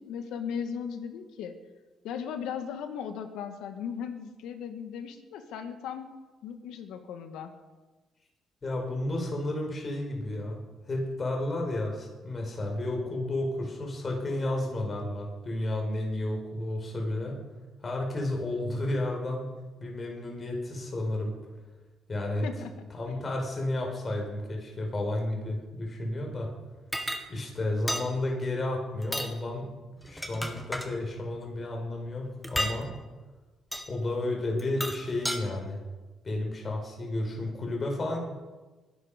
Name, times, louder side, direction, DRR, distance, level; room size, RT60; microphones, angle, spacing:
voice 1, 0.0-1.6 2.0-6.1 6.4-7.5 22.4-23.3, left 7 dB, 90° left, 7 dB, 1.8 m, -37 dB
voice 2, 8.6-10.6 10.9-17.4 17.8-19.4 19.8-21.3 22.1-22.5 22.9-26.5 27.3-29.7 30.0-32.9 33.9-35.8 36.2-38.2, left 1 dB, 35° left, 0 dB, 5.5 m, -32 dB
sound 1, 26.9-27.2 27.9-28.1 29.0-29.3 30.0-30.9 32.4-32.8 33.7-33.9 34.6-35.4, equal, ahead, 1.9 m, -32 dB
23.5 x 11.5 x 5.3 m, 1.2 s
cardioid pair, 90°, 0 cm